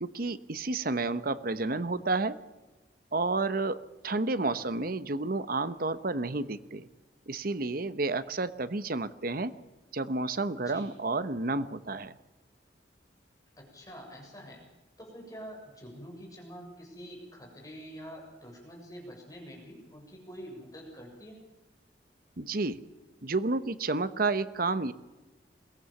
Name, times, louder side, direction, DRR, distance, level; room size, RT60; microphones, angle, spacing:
voice 1, 0.0-2.4 3.1-6.9 7.3-9.5 9.9-12.2 22.4-22.8 23.2-24.9, right 3 dB, 55° right, 13 dB, 1.0 m, -30 dB
voice 2, 10.6-10.9 13.6-14.6 15.0-21.4, equal, 20° left, 1 dB, 7.0 m, -46 dB
22.5 x 17.0 x 7.2 m, 1.1 s
head